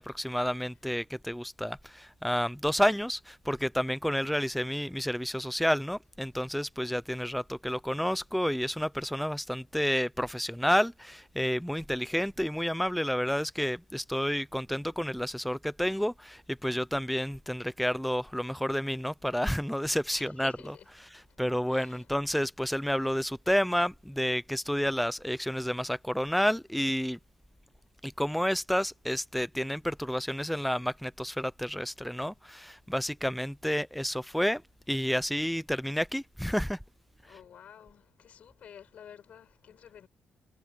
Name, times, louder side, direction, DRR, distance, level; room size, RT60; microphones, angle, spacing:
voice 1, 0.0-20.5 21.4-27.2 28.0-34.6 34.9-36.8, equal, ahead, 0.5 m, -30 dB
voice 2, 20.1-22.1 37.2-40.1, left 9 dB, 60° left, 7.1 m, -52 dB
cardioid pair, 130°, 3 cm